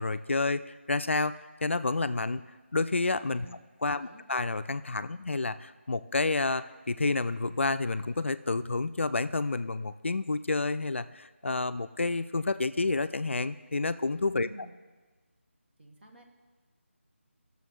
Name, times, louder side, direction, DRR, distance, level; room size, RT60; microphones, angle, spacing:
voice 1, 0.0-1.3 1.6-2.4 2.7-3.5 3.8-14.5, left 3 dB, 65° left, 12 dB, 0.3 m, -29 dB
voice 2, 3.9-4.2 14.3-14.8 15.8-16.2, right 1 dB, 50° right, 1 dB, 1.4 m, -49 dB
15.5 x 6.8 x 3.1 m, 1.3 s
figure-of-eight pair, 160°, 7 cm